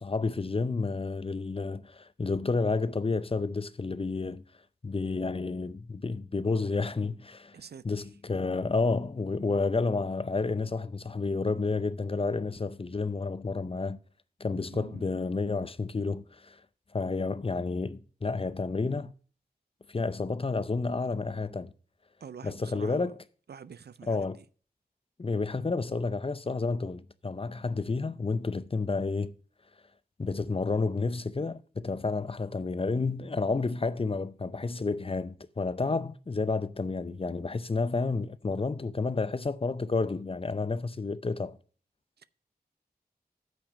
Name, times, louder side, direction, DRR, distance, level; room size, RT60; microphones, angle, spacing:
voice 1, 0.0-4.4 4.8-7.5 7.8-14.0 14.4-16.6 16.9-19.1 19.9-21.7 22.4-23.2 24.1-24.4 25.2-29.3 30.2-41.6, left 3 dB, 35° left, 0.6 m, -30 dB
voice 2, 7.5-8.1 14.7-15.1 22.2-23.1 23.5-24.4 42.2-42.3, right 7 dB, 90° right, 0.5 m, -47 dB
8.8 x 6.0 x 6.3 m
wide cardioid pair, 60°, 16 cm